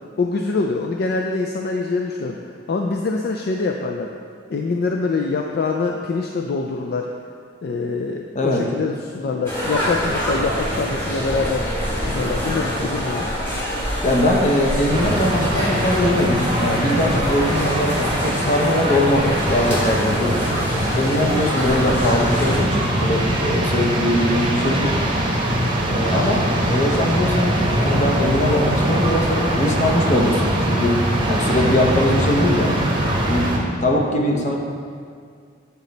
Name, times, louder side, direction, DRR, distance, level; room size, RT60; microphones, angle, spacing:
voice 1, 0.2-4.1 4.5-7.1 7.6-11.7 12.0-13.3 21.1-21.2 33.6-33.7, left 3 dB, 50° left, 1 dB, 0.3 m, -24 dB
sound 1, 9.5-22.6, equal, 10° left, 1.4 m, -25 dB
voice 2, 14.0-20.4 20.9-25.0 25.9-31.0 31.3-32.8 33.3-33.5 33.8-34.6, left 1 dB, 35° left, 0 dB, 0.7 m, -21 dB
sound 2, 14.9-33.6, right 1 dB, 25° right, 0.9 m, -22 dB
8.2 x 4.1 x 3.9 m, 2.2 s
head